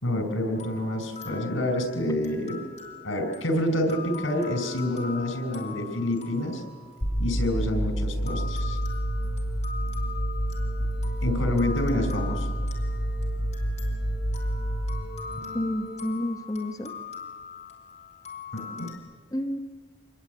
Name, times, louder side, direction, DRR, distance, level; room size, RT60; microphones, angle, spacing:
voice 1, 0.0-2.6 3.0-6.6 7.2-8.8 11.2-12.5 18.5-18.9, left 1 dB, 80° left, 7 dB, 4.9 m, -28 dB
sound 1, 0.5-7.7 8.3-18.9, left 5 dB, 35° left, 4.5 m, -42 dB
sound 2, 7.0-16.0, right 1 dB, 60° left, 5.4 m, -29 dB
voice 2, 15.5-16.9 19.3-19.6, left 1 dB, 20° left, 3 dB, 1.1 m, -30 dB
26.0 x 20.5 x 9.2 m, 1.5 s
head